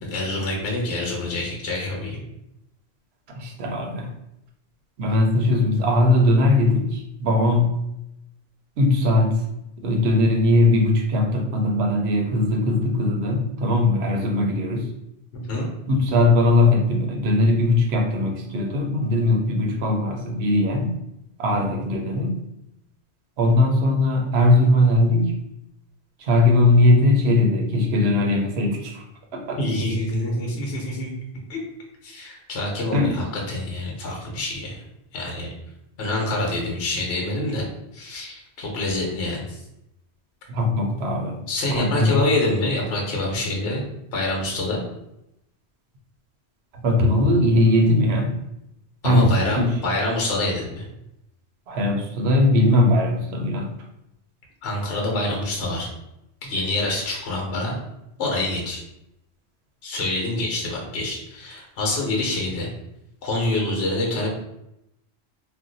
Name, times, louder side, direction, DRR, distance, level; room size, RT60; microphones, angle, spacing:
voice 1, 0.0-2.2 15.3-15.7 29.6-31.1 31.5-31.6 32.0-34.8 35.1-35.5 36.0-37.6 37.9-39.6 41.5-43.8 44.1-44.8 49.0-50.9 54.6-55.9 56.4-57.8 58.2-58.8 59.8-62.7 63.2-64.3, left 2 dB, 65° left, -1 dB, 1.0 m, -26 dB
voice 2, 3.3-4.1 5.0-7.8 8.8-9.4 9.8-14.9 15.9-21.0 21.4-22.4 23.4-25.4 26.2-29.0 29.3-29.6 32.9-33.3 40.5-41.4 41.8-42.2 46.7-48.4 49.0-49.8 51.7-53.7, left 1 dB, 65° right, 1 dB, 0.9 m, -20 dB
2.6 x 2.2 x 3.8 m, 0.85 s
omnidirectional pair, 1.2 m